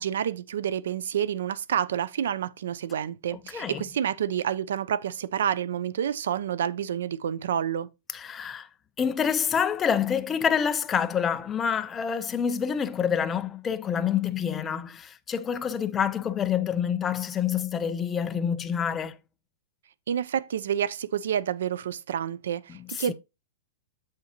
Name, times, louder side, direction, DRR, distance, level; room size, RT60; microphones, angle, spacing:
voice 1, 0.0-7.9 20.1-23.1, right 9 dB, 75° right, 0.5 m, -29 dB
voice 2, 3.5-3.8 8.1-8.7 9.0-19.2 22.7-23.1, left 7 dB, 15° left, 0.3 m, -27 dB
7.1 x 6.5 x 2.8 m
supercardioid pair, 170°, 0 cm